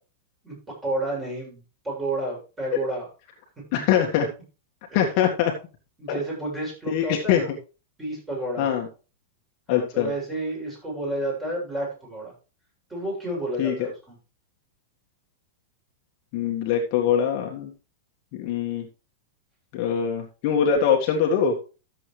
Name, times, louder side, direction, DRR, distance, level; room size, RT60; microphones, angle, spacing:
voice 1, 0.8-3.1 6.0-7.6 8.0-8.7 9.7-12.3 12.9-14.2, right 1 dB, 10° right, -3 dB, 7.2 m, -30 dB
voice 2, 3.7-4.3 4.9-5.5 6.1-6.2 6.9-7.4 8.6-8.9 9.7-10.1 13.6-13.7 16.3-17.7 18.4-18.9 19.7-21.6, left 8 dB, 45° left, 1 dB, 1.8 m, -23 dB
13.5 x 7.7 x 3.2 m, 0.33 s
supercardioid pair, 150°, 0 cm